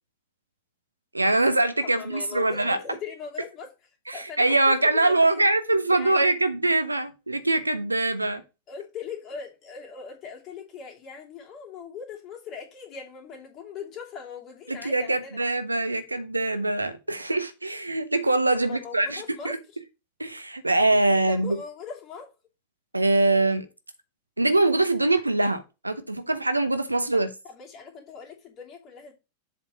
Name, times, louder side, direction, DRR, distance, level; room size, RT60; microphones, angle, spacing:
voice 1, 1.1-2.8 4.1-8.4 14.7-19.6 20.2-21.6 22.9-23.7 24.4-27.3, right 2 dB, 85° right, 0.8 m, -23 dB
voice 2, 1.9-3.7 4.1-5.4 5.9-6.2 8.7-15.4 18.6-19.6 21.3-22.3 27.4-29.1, left 6 dB, 35° left, 2.8 m, -40 dB
7.4 x 4.5 x 5.1 m
figure-of-eight pair, 90°, 0 cm